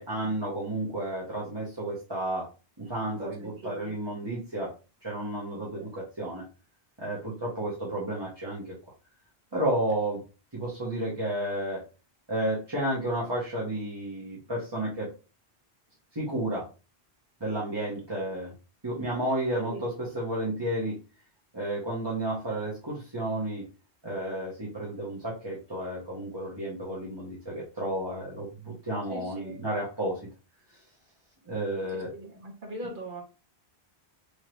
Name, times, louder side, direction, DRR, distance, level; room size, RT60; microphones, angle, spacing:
voice 1, 0.0-2.5 2.8-4.7 5.0-6.4 7.0-8.7 9.5-10.2 10.5-11.8 12.3-15.1 16.1-16.7 17.4-18.5 18.8-21.0 21.5-23.7 24.0-30.2 31.5-32.1, right 1 dB, 25° right, -6 dB, 1.1 m, -32 dB
voice 2, 3.2-3.9 5.5-5.9 19.6-19.9 29.1-29.6 31.9-33.2, right 1 dB, 50° right, 1 dB, 1.2 m, -41 dB
3.6 x 3.2 x 3.0 m, 0.32 s
omnidirectional pair, 1.1 m